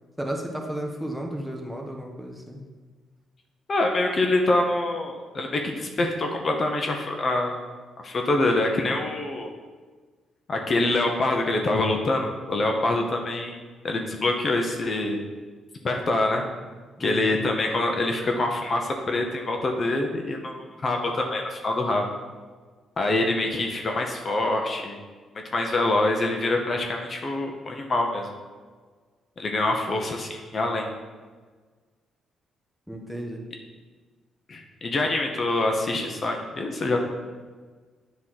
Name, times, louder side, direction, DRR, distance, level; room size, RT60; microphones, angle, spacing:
voice 1, 0.2-2.6 17.0-17.4 32.9-33.4, right 1 dB, 5° right, 0 dB, 1.0 m, -33 dB
voice 2, 3.7-7.6 8.0-9.5 10.5-13.6 13.8-15.2 15.8-16.4 17.0-22.1 23.0-25.0 25.5-28.3 29.4-30.9 34.5-37.0, left 2 dB, 40° left, 2 dB, 0.8 m, -25 dB
8.4 x 3.2 x 5.8 m, 1.4 s
cardioid pair, 90°, 0 cm